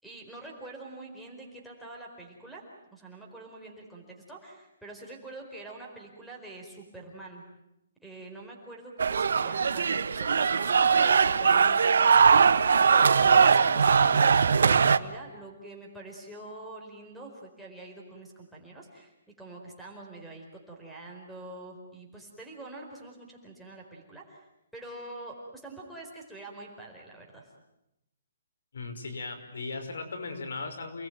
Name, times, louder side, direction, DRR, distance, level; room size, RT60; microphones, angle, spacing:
voice 1, 0.0-2.6 2.9-7.4 8.0-12.7 12.9-24.4 24.7-27.5, right 2 dB, ahead, -5 dB, 4.5 m, -45 dB
sound 1, 9.0-15.0, right 6 dB, 75° right, 1.4 m, -21 dB
voice 2, 28.7-31.1, left 3 dB, 80° left, 7 dB, 5.6 m, -37 dB
29.0 x 20.5 x 9.4 m, 0.88 s
hypercardioid pair, 170°, 0 cm